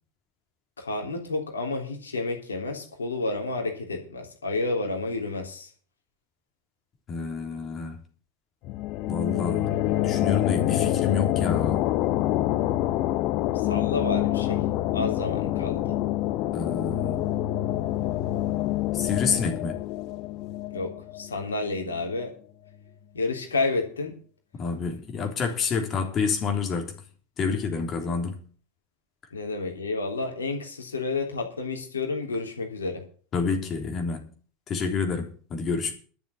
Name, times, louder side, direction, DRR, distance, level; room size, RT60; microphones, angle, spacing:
voice 1, 0.8-5.7 13.5-14.6 14.9-16.0 20.7-22.3 23.1-24.2 29.3-33.0, left 3 dB, 80° left, 3.3 m, -30 dB
voice 2, 7.1-8.0 9.1-9.7 10.0-11.9 16.5-17.3 18.9-19.8 24.5-26.9 27.4-28.4 33.3-34.3 34.7-35.9, left 5 dB, 35° left, 3.5 m, -28 dB
sound 1, 8.6-22.0, left 14 dB, 50° left, 0.7 m, -27 dB
12.0 x 7.2 x 8.5 m
figure-of-eight pair, 80°, 0 cm